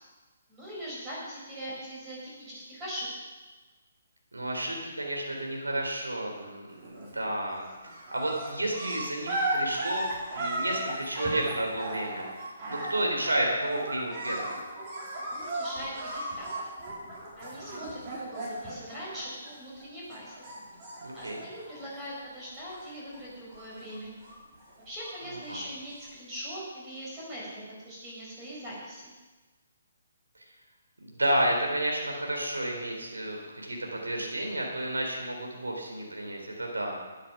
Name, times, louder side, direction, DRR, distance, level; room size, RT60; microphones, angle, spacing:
voice 1, 0.5-3.1 15.3-16.4 17.4-20.5 21.1-24.1 24.9-29.1, equal, 15° right, -6 dB, 5.3 m, -41 dB
voice 2, 4.3-10.1 10.3-14.5 21.0-21.4 25.3-25.6 31.0-37.0, right 1 dB, 85° right, 0 dB, 3.8 m, -31 dB
sound 1, 6.8-7.3 7.5-19.8 20.1-22.2 22.5-23.2 23.5-25.3 26.0-26.1, right 2 dB, 35° right, 4.3 m, -36 dB
12.0 x 9.9 x 6.1 m, 1.2 s
figure-of-eight pair, 140°, 0 cm